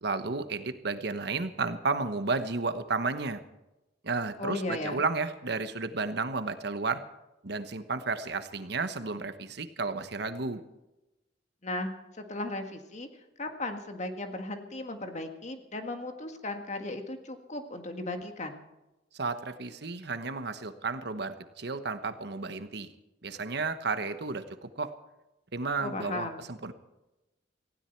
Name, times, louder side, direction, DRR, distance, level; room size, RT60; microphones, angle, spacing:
voice 1, 0.0-3.4 4.0-7.0 7.4-10.6 19.1-22.9 23.2-24.9 25.5-26.7, right 4 dB, 65° right, 10 dB, 1.1 m, -32 dB
voice 2, 4.4-5.0 11.6-13.1 13.4-18.6 25.8-26.4, left 2 dB, 40° left, 6 dB, 1.8 m, -36 dB
19.0 x 16.0 x 4.6 m, 0.98 s
head